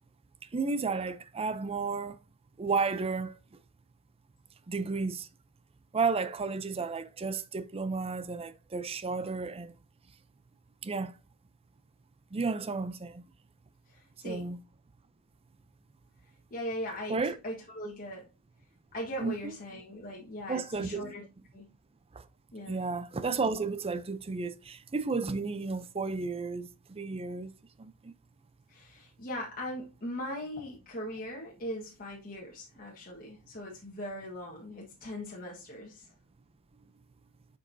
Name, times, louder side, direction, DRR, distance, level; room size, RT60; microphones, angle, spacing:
voice 1, 0.5-2.2 2.6-3.4 4.7-5.3 5.9-9.7 10.8-11.1 12.3-13.2 14.2-14.6 17.1-17.3 19.2-19.3 20.5-21.0 22.1-22.2 22.7-27.5 27.8-28.1, right 4 dB, 25° right, 0.5 m, -32 dB
voice 2, 13.9-14.4 16.5-18.3 18.9-21.2 21.5-21.7 22.5-22.8 28.7-36.1, equal, 40° left, 1.4 m, -40 dB
6.7 x 5.3 x 2.6 m
head